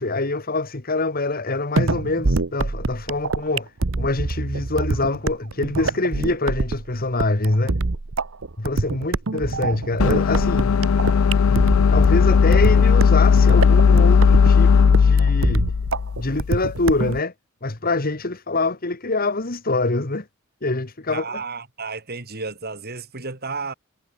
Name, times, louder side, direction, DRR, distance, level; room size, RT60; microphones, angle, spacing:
voice 1, 0.0-3.7 4.0-7.8 8.6-10.8 11.5-15.7 16.2-17.3 17.6-20.3 20.6-21.4, left 2 dB, 45° left, 1.8 m, -25 dB
sound 1, 1.8-17.2, right 3 dB, 70° right, 1.0 m, -25 dB
sound 2, 10.0-17.1, left 6 dB, 90° left, 0.4 m, -16 dB
voice 2, 21.1-23.7, right 4 dB, 50° right, 3.8 m, -32 dB
head